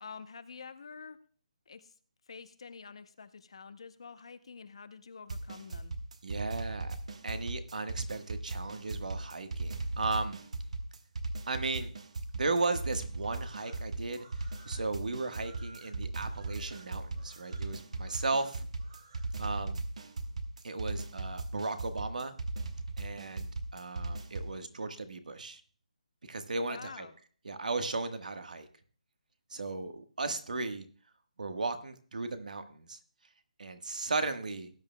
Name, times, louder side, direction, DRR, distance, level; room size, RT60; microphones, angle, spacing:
voice 1, 0.0-1.2 1.7-1.9 2.3-6.0 26.7-27.2, left 5 dB, 45° left, 12 dB, 0.7 m, -47 dB
sound 1, 5.3-24.6, right 2 dB, 55° right, 1.1 m, -38 dB
voice 2, 6.2-7.0 7.2-10.4 11.5-11.9 12.3-14.2 14.6-18.7 19.4-19.8 20.6-22.3 23.0-25.6 26.3-27.1 27.4-28.7 29.5-30.8 31.4-33.0 33.6-34.7, right 3 dB, 70° right, 8 dB, 1.4 m, -35 dB
sound 2, 12.5-19.3, right 4 dB, 30° right, 1.0 m, -58 dB
18.5 x 9.4 x 2.2 m, 0.43 s
hypercardioid pair, 180°, 4 cm